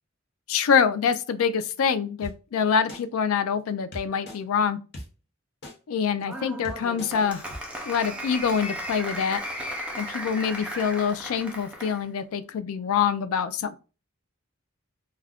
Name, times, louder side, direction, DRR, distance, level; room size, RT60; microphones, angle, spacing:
voice 1, 0.5-4.8 5.9-7.4 7.9-9.4 10.0-13.7, left 6 dB, 90° left, 0.3 m, -25 dB
sound 1, 2.2-2.3 2.9-3.0 3.9-4.4 4.9-5.0 5.6-5.7 6.3-6.4 6.6-7.1 7.5-7.6, equal, 55° left, 0.7 m, -38 dB
Applause, 6.2-12.0, equal, 5° right, 0.4 m, -36 dB
2.3 x 2.2 x 3.4 m
head